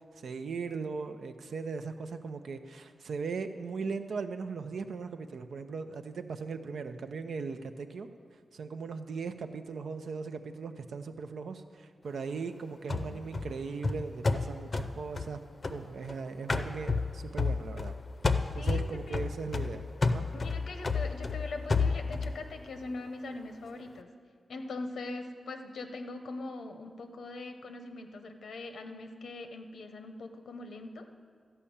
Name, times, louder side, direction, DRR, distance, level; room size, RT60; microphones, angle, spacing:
voice 1, 0.2-8.1 8.5-15.4 15.7-17.9 18.5-20.3, right 5 dB, 85° right, 8 dB, 0.6 m, -38 dB
voice 2, 12.9-13.2 18.6-19.2 20.3-24.1 24.5-31.1, left 2 dB, 90° left, 6 dB, 0.9 m, -42 dB
sound 1, 12.9-16.1 16.5-18.0 18.2-22.4, left 4 dB, 40° left, 0.6 m, -31 dB
13.0 x 5.6 x 8.7 m, 2.2 s
wide cardioid pair, 130°, 0 cm